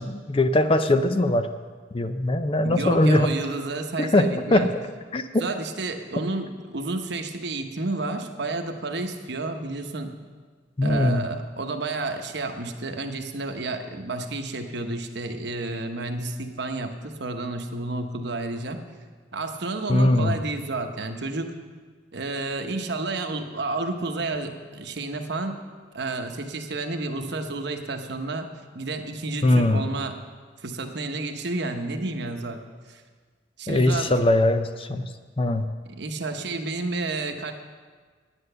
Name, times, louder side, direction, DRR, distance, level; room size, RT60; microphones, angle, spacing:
voice 1, 0.0-1.5 1.9-3.3 4.0-4.7 5.1-5.4 10.8-11.3 19.9-20.3 29.4-29.8 33.7-35.0 35.4-35.7, left 1 dB, 30° left, 9 dB, 0.5 m, -21 dB
voice 2, 2.6-4.7 5.4-10.1 10.8-18.8 19.3-21.5 22.1-25.6 25.9-28.5 28.7-30.2 30.6-32.6 32.9-33.0 33.6-34.1 35.9-37.5, right 2 dB, 60° right, 5 dB, 1.0 m, -30 dB
10.0 x 9.5 x 6.7 m, 1.5 s
head